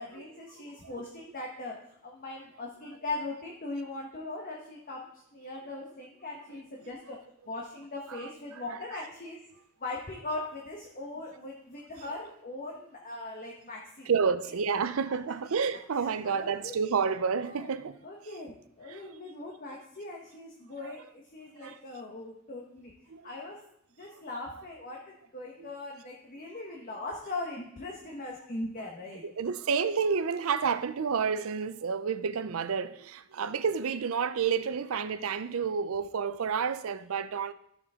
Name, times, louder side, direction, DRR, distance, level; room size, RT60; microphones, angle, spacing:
voice 1, 0.0-7.2 7.5-9.4 9.8-14.1 14.4-14.5 15.9-16.7 17.4-17.7 18.0-22.9 23.2-23.6 24.0-29.2, left 2 dB, 45° left, 1.2 m, -40 dB
voice 2, 14.1-18.0 18.9-19.0 20.8-20.9 21.6-21.7 23.1-23.2 25.6-25.7 29.2-37.5, right 6 dB, 85° right, 0.5 m, -30 dB
13.0 x 6.6 x 3.6 m
head